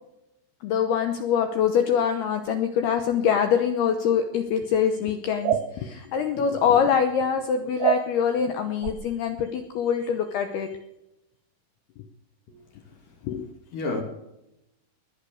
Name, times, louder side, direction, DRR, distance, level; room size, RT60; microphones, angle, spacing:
voice 1, 0.6-10.7 13.2-13.5, left 7 dB, 80° left, 2.3 m, -24 dB
sound 1, 5.4-5.7 7.8-8.0 8.8-9.0, right 12 dB, 80° right, 3.5 m, -23 dB
voice 2, 12.5-13.2 13.7-14.0, left 2 dB, 55° left, 2.9 m, -33 dB
20.5 x 10.5 x 6.4 m
omnidirectional pair, 5.9 m